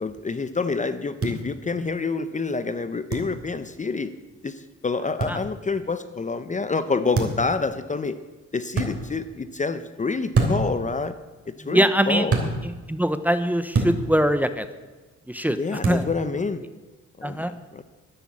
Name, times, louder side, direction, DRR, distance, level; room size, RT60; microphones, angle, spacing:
voice 1, 0.0-4.1 4.4-8.2 8.5-11.1 11.5-12.4 15.5-16.6 17.2-17.8, left 4 dB, 25° left, 11 dB, 0.8 m, -27 dB
sound 1, 1.2-1.4 3.1-3.3 5.2-5.4 7.1-7.5 8.7-8.9 10.3-10.7 12.3-12.5 13.7-14.0 15.8-16.0, right 3 dB, 50° right, 3.2 m, -23 dB
voice 2, 11.7-12.2 12.9-14.6 15.3-15.6 15.9-16.0 17.2-17.5, equal, 5° right, 10 dB, 0.9 m, -22 dB
12.5 x 9.9 x 8.7 m, 1.3 s
cardioid pair, 90°, 30 cm